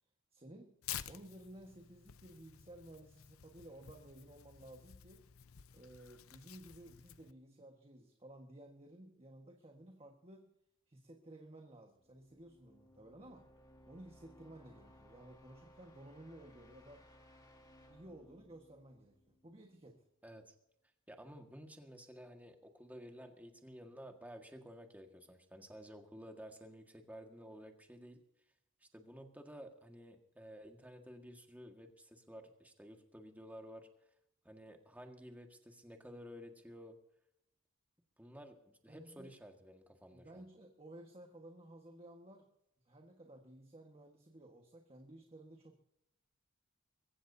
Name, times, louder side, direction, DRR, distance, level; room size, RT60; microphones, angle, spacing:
voice 1, 0.3-0.8 1.0-5.3 5.7-10.5 10.9-13.5 13.9-17.0 17.9-20.0 38.9-39.3 40.1-42.5 42.8-45.8, right 1 dB, 30° right, 2 dB, 1.5 m, -55 dB
Tearing, 0.8-7.3, left 11 dB, 75° left, 0.7 m, -51 dB
sound 1, 12.0-19.8, equal, 20° left, 2.2 m, -63 dB
voice 2, 20.2-20.5 21.1-28.2 28.8-33.9 34.4-37.0 38.2-40.4, equal, 10° right, 3 dB, 1.7 m, -53 dB
23.0 x 15.0 x 2.8 m, 0.79 s
head